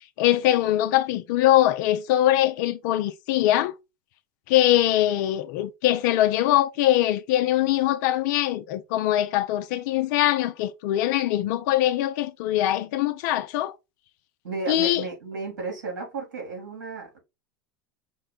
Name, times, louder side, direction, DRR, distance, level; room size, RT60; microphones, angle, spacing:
voice 1, 0.2-3.7 4.5-13.7 14.7-15.0, left 13 dB, 65° left, 0.5 m, -22 dB
voice 2, 14.4-17.2, right 4 dB, 85° right, 2.4 m, -33 dB
5.3 x 2.1 x 3.8 m
hypercardioid pair, 100°, 10 cm